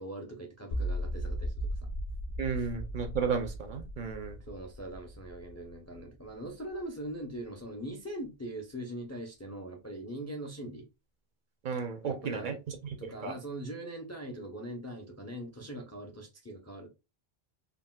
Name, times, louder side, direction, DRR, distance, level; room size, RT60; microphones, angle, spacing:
voice 1, 0.0-1.9 2.6-2.7 4.4-10.9 12.0-12.6 13.0-16.9, right 1 dB, 25° left, 0.4 m, -41 dB
sound 1, 0.7-6.8, equal, 70° left, 0.7 m, -37 dB
voice 2, 2.4-4.4 11.6-12.6 13.2-13.3, right 5 dB, 60° right, 0.6 m, -33 dB
3.7 x 2.2 x 2.2 m
omnidirectional pair, 1.1 m